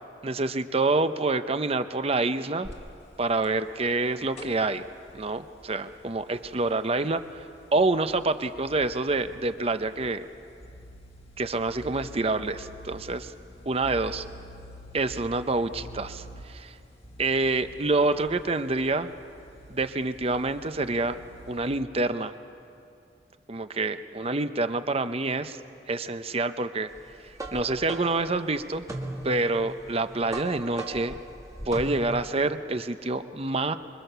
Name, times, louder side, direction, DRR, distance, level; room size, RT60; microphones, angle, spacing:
voice 1, 0.2-2.7 3.2-4.8 5.1-7.4 7.7-10.2 11.4-13.3 13.7-14.2 14.9-16.7 17.2-19.1 19.7-21.2 21.5-22.3 23.5-25.6 25.9-26.9 27.5-28.8 29.2-31.2 31.7-33.8, right 3 dB, 35° right, 10 dB, 0.8 m, -27 dB
sound 1, 2.6-21.8, equal, 35° left, 1.6 m, -48 dB
sound 2, 27.0-32.4, right 1 dB, 20° right, 1.7 m, -38 dB
25.5 x 23.5 x 6.8 m, 2.6 s
head